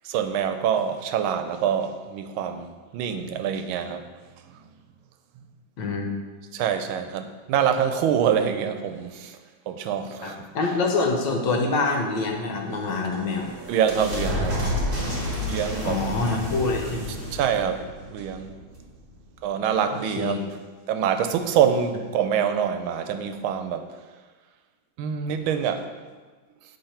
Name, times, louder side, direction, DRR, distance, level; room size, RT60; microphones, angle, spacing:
voice 1, 0.0-4.0 4.5-4.6 6.5-9.4 9.7-10.5 13.7-14.6 15.5-16.0 17.3-18.5 19.4-20.4 20.9-23.9 25.0-25.9, right 8 dB, 85° right, 8 dB, 1.4 m, -25 dB
voice 2, 5.8-6.1 10.2-13.5 15.8-17.2 19.9-20.4, left 3 dB, 70° left, 2 dB, 1.5 m, -26 dB
sound 1, 12.7-19.2, left 1 dB, 25° right, 2.0 m, -31 dB
8.7 x 3.6 x 5.6 m, 1.4 s
omnidirectional pair, 2.2 m